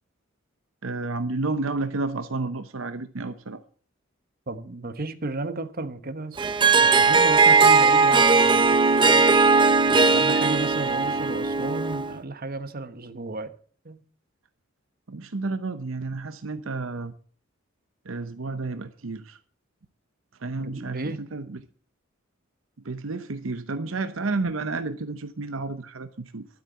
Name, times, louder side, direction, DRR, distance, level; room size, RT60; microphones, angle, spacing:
voice 1, 0.8-3.6 15.1-17.1 18.0-19.4 20.4-21.6 22.8-26.5, right 3 dB, 75° right, 0.9 m, -31 dB
voice 2, 4.5-9.4 9.9-13.5 13.8-14.0 20.6-21.2, right 2 dB, 50° right, 1.2 m, -34 dB
Harp, 6.4-12.2, right 4 dB, 25° right, 0.9 m, -18 dB
12.5 x 8.1 x 6.9 m
head